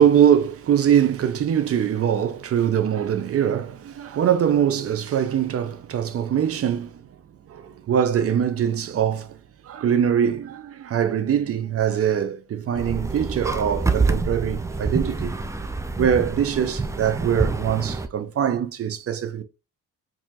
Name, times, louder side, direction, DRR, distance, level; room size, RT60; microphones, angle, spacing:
voice 1, 0.0-7.0 7.5-9.4 9.6-15.4 16.0-19.4, right 9 dB, 50° right, 0.7 m, -22 dB
sound 1, 12.8-18.1, right 3 dB, 10° right, 0.4 m, -26 dB
4.5 x 2.8 x 2.8 m
cardioid pair, 90°, 30 cm